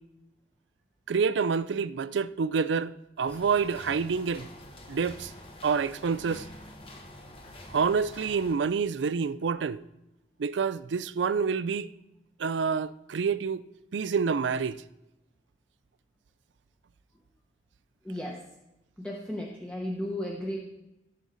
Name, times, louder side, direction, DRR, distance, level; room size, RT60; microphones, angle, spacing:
voice 1, 1.1-4.5 4.9-5.3 5.6-6.5 7.7-9.8 10.4-11.9 12.4-13.6 13.9-14.8, right 5 dB, 80° right, 0.4 m, -27 dB
sound 1, 3.2-8.6, left 1 dB, 30° left, 1.3 m, -47 dB
voice 2, 18.0-18.4 19.0-20.6, left 1 dB, 5° left, 1.0 m, -34 dB
16.5 x 6.4 x 4.0 m
head